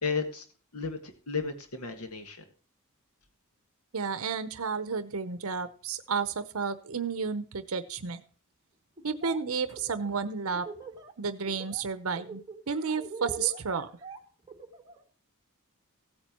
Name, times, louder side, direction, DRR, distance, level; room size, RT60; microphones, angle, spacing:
voice 1, 0.0-0.4 0.7-2.4, left 4 dB, 85° left, 6 dB, 1.7 m, -33 dB
voice 2, 3.9-8.2 9.0-10.7 11.2-13.9, right 5 dB, 70° right, 12 dB, 0.8 m, -32 dB
Laughter, 9.0-9.4 9.7-11.1 11.5-11.8 12.2-15.0, right 4 dB, 20° right, 2.1 m, -43 dB
16.5 x 8.9 x 3.0 m, 0.40 s
head